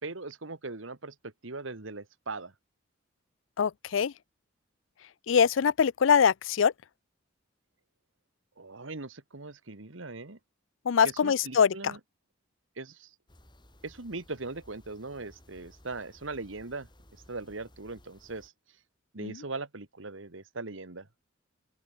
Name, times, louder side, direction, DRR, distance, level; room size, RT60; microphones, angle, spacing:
voice 1, 0.0-2.5 8.6-10.4 11.0-12.0 12.8-13.1 13.8-16.9 17.3-18.5 19.1-21.1, right 3 dB, 75° right, 1.7 m, -40 dB
voice 2, 3.6-4.1 5.3-6.7 10.9-12.0 19.2-19.4, left 7 dB, 75° left, 0.4 m, -23 dB
sound 1, 13.3-18.5, left 1 dB, 25° left, 6.5 m, -58 dB
open air
head